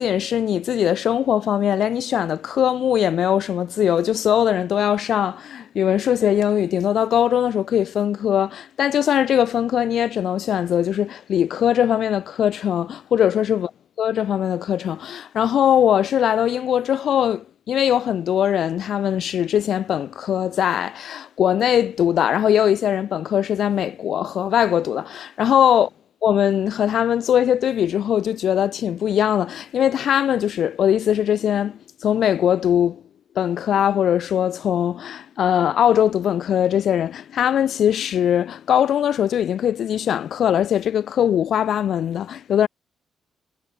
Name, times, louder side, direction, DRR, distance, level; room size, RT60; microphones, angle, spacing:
voice 1, 0.0-13.7 14.0-25.9 26.2-33.0 33.3-42.7, left 9 dB, 65° left, 2.7 m, -21 dB
cardioid pair, 110°, 0 cm